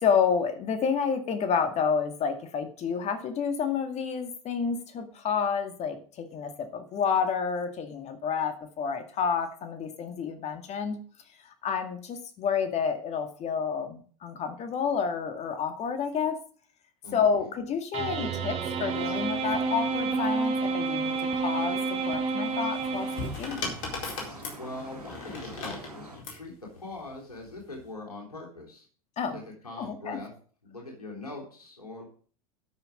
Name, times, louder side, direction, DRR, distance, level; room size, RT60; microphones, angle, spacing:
voice 1, 0.0-11.0 11.4-16.4 17.1-23.6 29.2-29.4 29.8-30.2, left 6 dB, 35° left, 8 dB, 2.2 m, -29 dB
voice 2, 17.0-17.5 24.6-28.9 29.3-30.3 30.6-32.0, left 2 dB, 85° left, -1 dB, 3.7 m, -42 dB
sound 1, 17.9-23.7, right 4 dB, 35° right, 2.7 m, -29 dB
sound 2, 18.9-26.2, right 1 dB, 90° right, 4.7 m, -46 dB
sound 3, 22.8-26.4 27.5-27.9, left 3 dB, 60° left, 4.4 m, -37 dB
12.5 x 6.7 x 5.1 m, 0.43 s
figure-of-eight pair, 85°, 19 cm